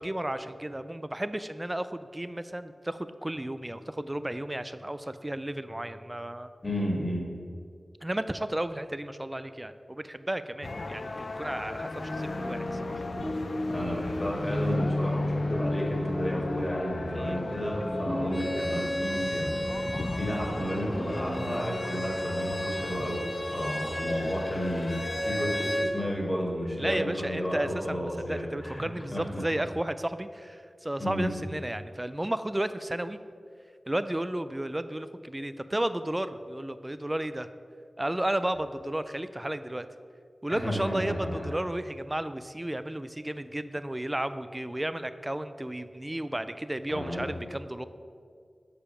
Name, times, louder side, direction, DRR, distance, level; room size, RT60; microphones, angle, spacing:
voice 1, 0.0-6.5 8.0-13.0 17.1-17.4 23.7-23.9 26.8-33.2 33.9-37.5 38.0-39.9 40.4-47.8, right 1 dB, 20° right, 12 dB, 0.3 m, -33 dB
voice 2, 6.6-7.3 13.7-19.5 19.9-28.9 29.1-29.4 31.0-31.3 40.5-41.5 46.9-47.3, equal, 25° left, -2 dB, 1.9 m, -32 dB
sound 1, 10.6-25.8, left 2 dB, 60° left, 0.4 m, -38 dB
sound 2, 11.8-21.7, left 1 dB, 5° left, 1.1 m, -34 dB
Bowed string instrument, 18.3-25.9, equal, 45° left, 1.0 m, -34 dB
6.9 x 5.1 x 5.7 m, 2.2 s
wide cardioid pair, 70°, 0 cm